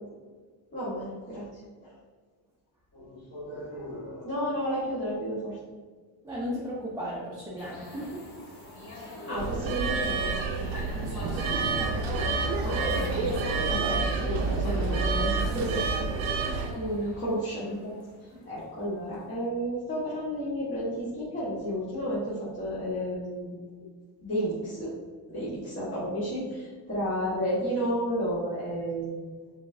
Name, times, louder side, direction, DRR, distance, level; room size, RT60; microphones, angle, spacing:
voice 1, 0.7-1.9 2.9-5.6 8.9-10.4 12.0-13.2 13.6-15.8 16.3-17.9 18.2-23.5 24.2-24.9 25.3-29.2, equal, 25° left, -10 dB, 1.5 m, -32 dB
voice 2, 6.2-8.3 10.9-12.0 16.1-16.6, equal, 10° right, -6 dB, 0.8 m, -37 dB
sound 1, 7.6-19.1, left 2 dB, 50° left, 1.3 m, -44 dB
sound 2, 9.4-16.7, right 4 dB, 75° right, 0.7 m, -28 dB
5.1 x 3.6 x 2.6 m, 1.5 s
cardioid pair, 110°, 48 cm